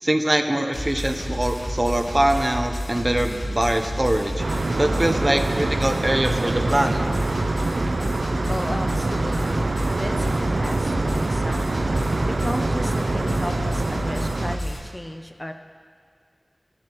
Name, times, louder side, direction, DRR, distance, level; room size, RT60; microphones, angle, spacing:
voice 1, 0.0-7.0, right 1 dB, 30° right, 5 dB, 0.7 m, -23 dB
sound 1, 0.7-14.8, equal, 65° left, 2.1 m, -30 dB
sound 2, 4.4-14.6, right 2 dB, 85° right, 0.4 m, -25 dB
voice 2, 8.5-9.7 10.0-11.9 12.3-15.5, left 1 dB, 20° left, 6 dB, 0.5 m, -34 dB
17.0 x 7.4 x 3.0 m, 2.1 s
wide cardioid pair, 50°, 0 cm